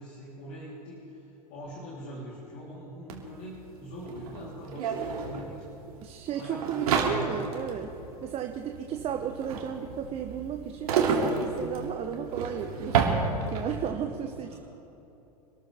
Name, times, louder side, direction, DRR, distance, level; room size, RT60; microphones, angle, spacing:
voice 1, 0.0-5.6 6.3-7.6 14.3-14.6, equal, 45° left, -6 dB, 3.5 m, -43 dB
sound 1, 3.1-3.2 3.4-13.8, right 5 dB, 60° right, 2.7 m, -30 dB
voice 2, 6.0-7.9 8.2-13.2 13.5-14.6, right 8 dB, 30° right, 5 dB, 0.9 m, -34 dB
26.0 x 13.5 x 3.5 m, 3.0 s
figure-of-eight pair, 95°, 21 cm